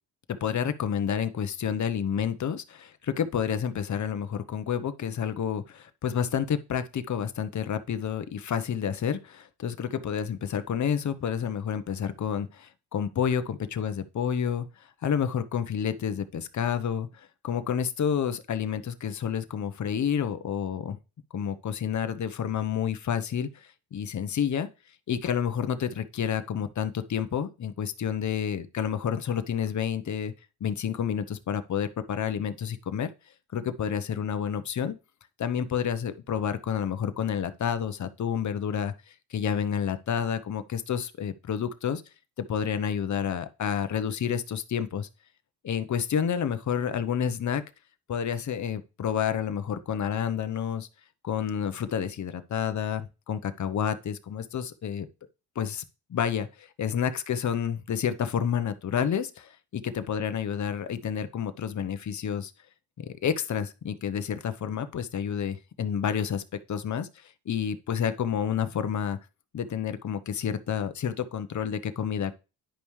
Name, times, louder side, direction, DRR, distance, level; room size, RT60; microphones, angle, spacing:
voice 1, 0.4-14.7 15.0-21.0 21.3-24.7 25.1-30.3 30.6-33.1 33.5-35.0 35.4-42.0 42.5-45.1 45.6-47.6 48.1-50.9 51.2-55.1 55.6-55.8 56.1-62.5 63.0-66.4 66.7-69.2 69.5-72.3, left 8 dB, 40° left, 0.9 m, -29 dB
10.0 x 5.2 x 3.2 m
supercardioid pair, 75°, 45 cm